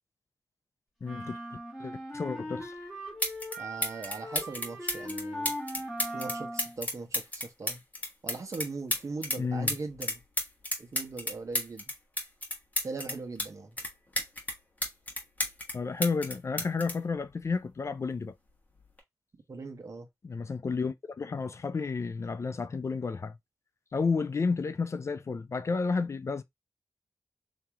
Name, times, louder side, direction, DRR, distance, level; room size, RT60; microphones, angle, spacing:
voice 1, 1.0-1.4 1.8-2.7 9.4-9.7 15.7-18.4 20.2-23.4 23.9-26.4, left 4 dB, 45° left, 0.4 m, -31 dB
sound 1, 1.0-6.8, equal, ahead, 1.5 m, -39 dB
sound 2, 2.7-2.8 3.2-3.6 3.8-9.4 9.7-13.5 13.8-15.7 16.0-17.8 18.8-19.0, left 1 dB, 25° left, 1.3 m, -32 dB
voice 2, 3.6-5.5 6.1-7.8 8.2-10.2 10.8-11.9 12.8-13.8 19.5-20.1, right 3 dB, 55° right, 1.2 m, -40 dB
3.0 x 2.9 x 3.5 m
wide cardioid pair, 95°, 7 cm